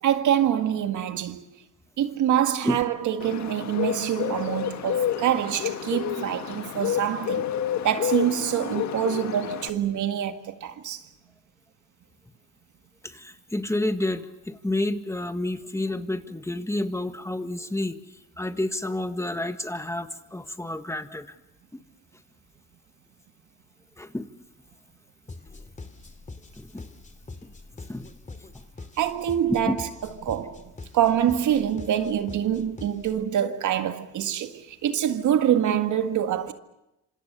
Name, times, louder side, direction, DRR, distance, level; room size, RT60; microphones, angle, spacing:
voice 1, 0.0-1.4 2.0-7.5 7.8-11.0 29.0-29.9 30.2-36.5, right 10 dB, 75° right, 1.9 m, -25 dB
Bird, 3.2-9.7, left 9 dB, 65° left, 1.8 m, -29 dB
voice 2, 13.0-18.0 18.4-21.3 24.0-24.3 26.6-26.9 27.4-27.5 27.9-28.1 29.6-29.7, left 1 dB, 10° left, 1.7 m, -29 dB
sound 1, 25.3-33.3, left 3 dB, 25° left, 2.7 m, -44 dB
26.5 x 26.0 x 6.9 m
cardioid pair, 90°, 30 cm